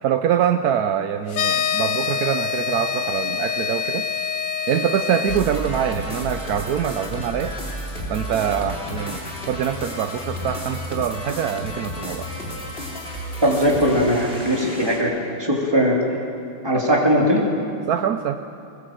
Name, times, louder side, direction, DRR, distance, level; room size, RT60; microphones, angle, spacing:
voice 1, 0.0-4.1 4.7-7.5 8.1-9.2 9.5-12.3 17.9-18.4, right 9 dB, 70° right, 8 dB, 0.9 m, -24 dB
sound 1, 1.3-5.4, left 7 dB, 75° left, 0.7 m, -25 dB
sound 2, 5.3-15.0, left 1 dB, 25° left, 3.6 m, -32 dB
voice 2, 13.4-15.1 15.4-16.0 16.6-17.4, equal, 10° right, -2 dB, 3.3 m, -19 dB
21.0 x 20.0 x 7.7 m, 2.6 s
omnidirectional pair, 2.3 m